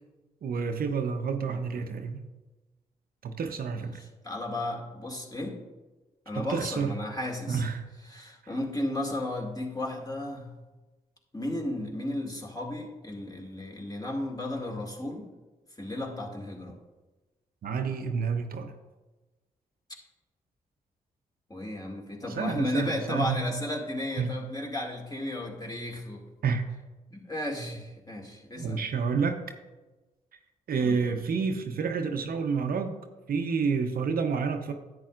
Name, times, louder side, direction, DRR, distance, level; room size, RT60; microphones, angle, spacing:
voice 1, 0.4-2.2 3.2-4.0 6.3-6.9 7.5-7.8 8.4-8.5 17.6-18.7 22.3-23.5 24.2-24.4 26.4-26.7 27.6-27.8 28.5-29.4 30.7-33.0 33.3-34.7, right 5 dB, 65° right, 6 dB, 0.8 m, -29 dB
voice 2, 1.5-1.9 3.7-5.6 6.3-7.6 8.1-10.5 11.3-15.2 15.8-16.8 21.5-26.2 27.1-28.8 30.8-31.1, left 1 dB, 25° left, 0 dB, 2.3 m, -34 dB
10.5 x 8.4 x 2.5 m, 1.1 s
supercardioid pair, 45°, 16 cm